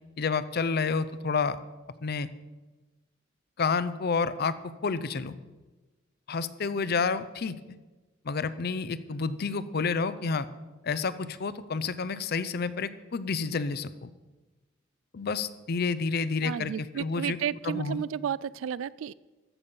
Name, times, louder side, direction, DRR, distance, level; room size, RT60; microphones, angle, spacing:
voice 1, 0.2-1.6 2.0-2.3 3.6-4.6 4.8-5.4 6.3-7.6 8.3-10.5 10.8-14.1 15.1-17.4 17.6-18.0, left 4 dB, 55° left, 15 dB, 0.5 m, -29 dB
voice 2, 16.4-19.1, right 8 dB, 90° right, 20 dB, 0.3 m, -32 dB
14.0 x 6.9 x 5.5 m, 1.2 s
head